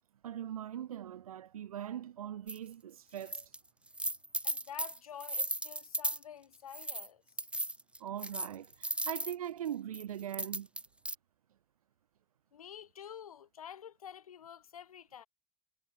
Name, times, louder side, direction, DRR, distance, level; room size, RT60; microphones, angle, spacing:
voice 1, 0.2-3.5 8.0-10.7, right 10 dB, 85° right, 2.3 m, -41 dB
sound 1, 2.5-2.6 3.2-3.6 3.9-6.2 6.7-7.1 7.4-9.3 9.9-11.1, right 1 dB, 5° right, 0.6 m, -36 dB
voice 2, 4.4-7.2 12.5-15.3, left 9 dB, 85° left, 4.0 m, -49 dB
figure-of-eight pair, 45°, 18 cm